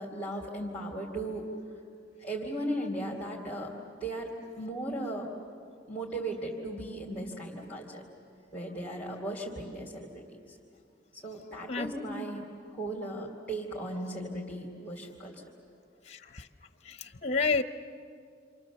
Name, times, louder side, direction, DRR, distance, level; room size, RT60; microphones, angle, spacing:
voice 1, 0.0-1.5 2.2-3.7 4.0-5.3 5.9-8.0 8.5-10.6 11.2-12.4 12.7-15.4, right 1 dB, 5° left, -4 dB, 2.7 m, -37 dB
voice 2, 16.1-16.4 16.9-17.6, left 4 dB, 35° left, 10 dB, 0.8 m, -30 dB
28.0 x 27.0 x 7.2 m, 2.3 s
head